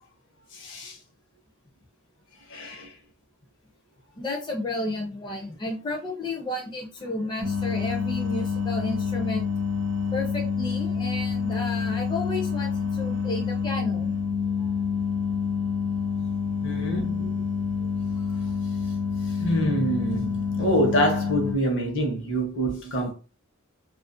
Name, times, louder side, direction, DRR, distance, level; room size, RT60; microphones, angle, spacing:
voice 1, 0.5-1.0 2.5-2.9 16.6-17.4 19.2-23.1, right 1 dB, 65° left, 0.8 m, -26 dB
voice 2, 4.2-9.5 10.1-14.1, left 2 dB, 20° left, 0.4 m, -32 dB
sound 1, 7.4-21.5, left 5 dB, 65° right, 0.7 m, -27 dB
2.4 x 2.0 x 2.5 m
head